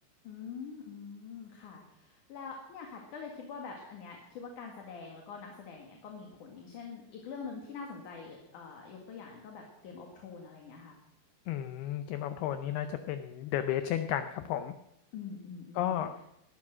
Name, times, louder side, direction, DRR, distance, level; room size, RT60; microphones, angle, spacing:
voice 1, 0.2-11.0 15.1-16.1, left 5 dB, 55° left, 1 dB, 2.7 m, -45 dB
voice 2, 11.5-14.7 15.8-16.2, left 11 dB, 90° left, 9 dB, 2.2 m, -33 dB
19.0 x 12.0 x 6.2 m, 0.86 s
omnidirectional pair, 5.4 m